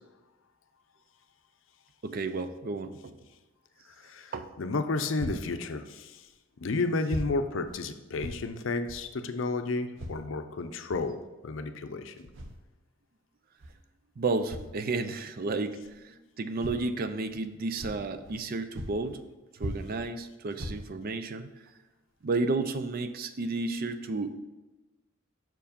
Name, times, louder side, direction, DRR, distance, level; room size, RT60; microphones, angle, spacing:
voice 1, 2.0-3.2 4.3-4.5 14.2-19.2 19.6-21.5 22.2-24.3, right 3 dB, 45° right, 10 dB, 0.4 m, -32 dB
voice 2, 4.0-6.2 6.6-11.2 11.4-12.3, left 3 dB, 65° left, 8 dB, 0.5 m, -32 dB
sound 1, 5.2-5.4 6.3-6.4 7.1-7.3 7.7-7.8 8.2-8.4 8.9-9.0 9.9-10.2 10.9-11.1 12.2-12.6 13.6-13.7 14.5-14.7 15.8-15.9 16.6-16.8 17.3-17.4 17.8-18.4 18.7-19.2 19.6-20.1 20.5-21.1 21.7-21.8 22.2-22.3, equal, 65° right, 0.8 m, -39 dB
6.1 x 4.7 x 5.1 m, 1.1 s
head